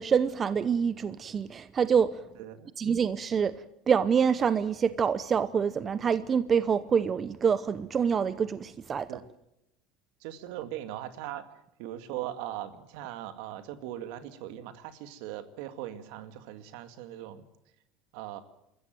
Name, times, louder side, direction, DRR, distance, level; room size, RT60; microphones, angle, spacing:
voice 1, 0.0-2.2 2.8-9.1, right 7 dB, 35° right, 14 dB, 0.8 m, -26 dB
voice 2, 2.4-2.7 9.1-9.2 10.2-11.4 11.8-17.4 18.1-18.4, right 12 dB, 75° right, 11 dB, 2.1 m, -39 dB
26.0 x 14.5 x 9.1 m, 0.87 s
supercardioid pair, 100°, 0 cm